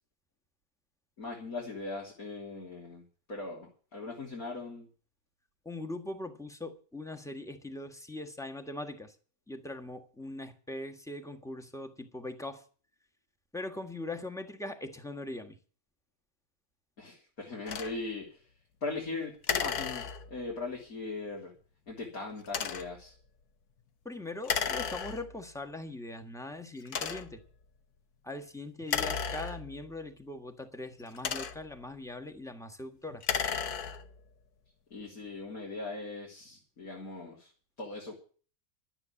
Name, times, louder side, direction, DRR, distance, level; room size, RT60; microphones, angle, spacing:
voice 1, 1.2-4.9 17.0-18.5 18.8-21.5 21.9-23.1 34.9-37.5 37.8-38.1, left 3 dB, 70° left, -1 dB, 3.7 m, -40 dB
voice 2, 5.6-9.1 9.5-12.6 13.5-15.6 24.0-27.4 28.2-33.2, left 2 dB, ahead, 6 dB, 1.4 m, -41 dB
Kickstand Open Close, 17.7-17.9 19.4-20.5 22.4-23.0 24.4-25.4 26.1-26.2 26.8-27.5 28.8-30.0 30.9-31.8 33.1-34.2, left 7 dB, 85° left, 1.6 m, -34 dB
13.0 x 8.1 x 8.5 m, 0.40 s
omnidirectional pair, 1.6 m